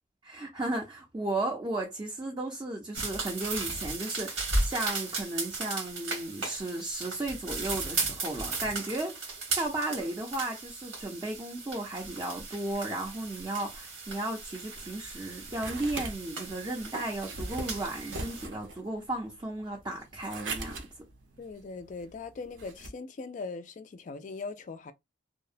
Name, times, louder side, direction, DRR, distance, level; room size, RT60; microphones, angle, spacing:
voice 1, 0.2-20.9, right 2 dB, 20° right, 0.4 m, -35 dB
sound 1, 2.9-18.5, right 3 dB, 90° right, 1.2 m, -36 dB
sound 2, 14.7-22.9, right 3 dB, 75° right, 0.6 m, -41 dB
voice 2, 21.4-24.9, left 4 dB, 40° left, 0.3 m, -40 dB
2.7 x 2.0 x 2.4 m
head